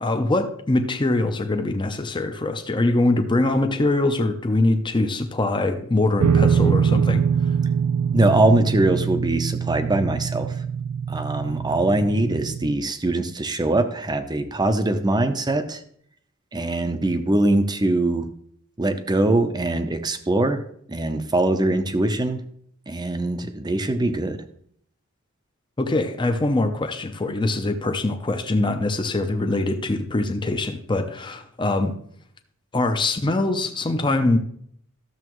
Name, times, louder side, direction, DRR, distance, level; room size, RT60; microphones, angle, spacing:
voice 1, 0.0-7.2 25.8-31.9 32.7-34.4, left 2 dB, 20° left, 0.6 m, -23 dB
sound 1, 6.2-12.7, right 7 dB, 80° right, 0.4 m, -23 dB
voice 2, 8.1-10.5 11.1-15.8 16.5-18.3 18.8-20.6 20.9-22.4 22.9-24.4, right 2 dB, 20° right, 0.6 m, -22 dB
12.5 x 6.8 x 3.1 m
head